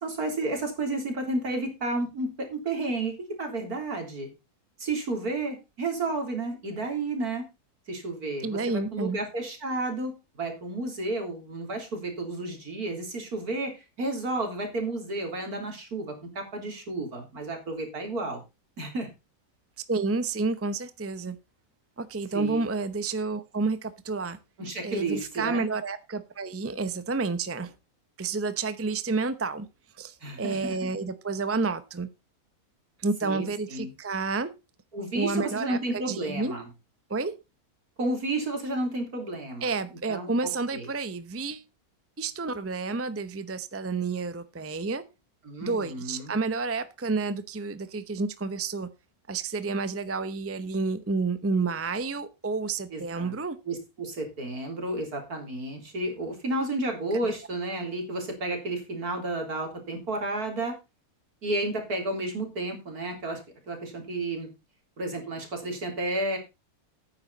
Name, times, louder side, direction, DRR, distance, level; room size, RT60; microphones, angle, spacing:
voice 1, 0.0-4.3 4.8-7.5 7.9-18.4 18.8-19.1 22.3-22.6 24.6-25.7 30.2-30.9 33.2-33.9 34.9-36.7 38.0-40.3 40.7-40.9 45.4-46.3 52.9-53.3 53.7-60.8 61.4-64.5 65.0-66.4, right 2 dB, 75° right, 3.9 m, -32 dB
voice 2, 8.4-9.2 19.8-21.4 22.0-24.4 24.8-27.7 28.2-29.7 30.0-32.1 33.0-34.5 35.1-35.8 36.1-36.5 37.1-37.3 39.6-41.6 42.2-45.0 45.6-48.9 49.3-53.6 57.2-57.3, right 3 dB, 15° right, 0.6 m, -30 dB
12.0 x 9.6 x 4.0 m
omnidirectional pair, 1.6 m